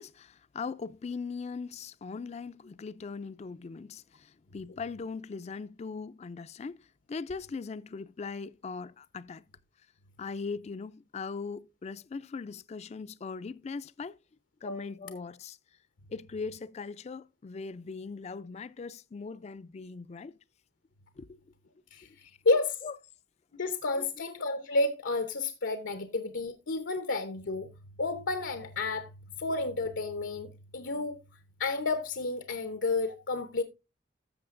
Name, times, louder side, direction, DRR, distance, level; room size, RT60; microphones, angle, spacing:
voice 1, 0.0-9.4 10.2-14.2 14.6-15.6 16.1-20.4 21.2-21.4 22.8-22.9 24.0-24.1, left 4 dB, 35° left, 0.3 m, -40 dB
voice 2, 21.9-22.8 23.5-27.7 28.0-29.1 29.4-31.2 31.6-33.6, left 3 dB, 90° left, 0.8 m, -31 dB
14.0 x 6.6 x 2.5 m
head